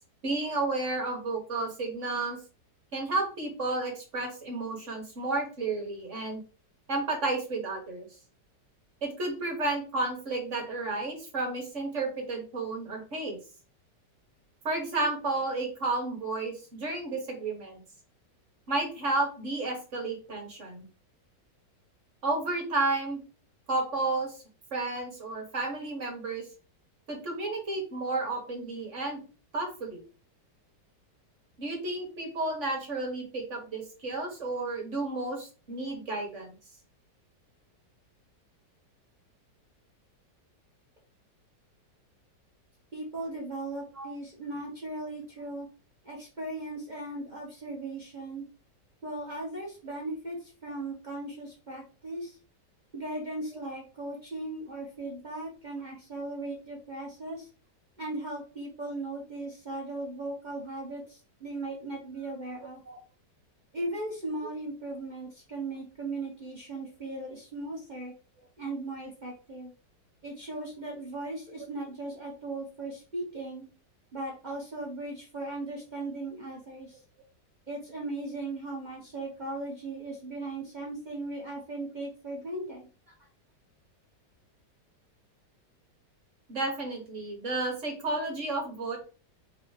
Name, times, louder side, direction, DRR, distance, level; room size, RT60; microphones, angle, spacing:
voice 1, 0.2-2.4 2.9-6.4 6.9-8.1 9.0-13.4 14.6-17.8 18.7-20.8 22.2-23.2 23.7-24.4 24.7-26.4 27.1-29.2 29.5-30.0 31.6-36.5 44.0-44.1 62.9-63.0 86.5-89.0, right 2 dB, 45° right, 1 dB, 1.5 m, -32 dB
voice 2, 42.9-45.7 46.0-48.4 49.0-52.4 52.9-57.5 58.0-62.8 63.7-68.1 68.6-69.7 70.2-73.6 74.1-77.0 77.7-83.3, right 2 dB, 30° right, -3 dB, 1.1 m, -38 dB
3.6 x 3.0 x 4.8 m, 0.35 s
omnidirectional pair, 1.9 m